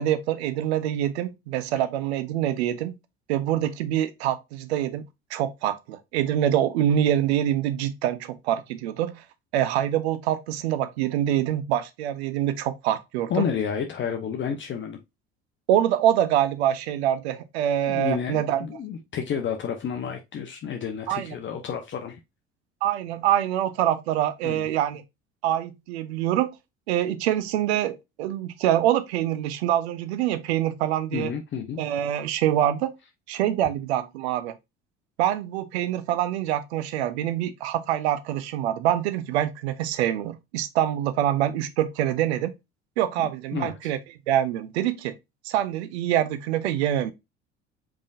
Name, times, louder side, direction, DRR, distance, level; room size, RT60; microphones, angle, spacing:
voice 1, 0.0-2.9 3.3-5.0 5.3-9.2 9.5-13.4 15.7-18.7 21.1-21.3 22.8-25.0 25.4-26.5 26.9-31.3 31.8-32.9 33.3-34.6 35.2-42.5 43.0-44.0 44.3-45.1 45.4-47.1, right 11 dB, 65° right, 0.7 m, -25 dB
voice 2, 13.3-15.0 17.9-22.2 24.4-24.7 31.1-31.8 43.5-43.7, left 7 dB, 35° left, 0.8 m, -30 dB
5.2 x 3.6 x 2.4 m
figure-of-eight pair, 60°, 34 cm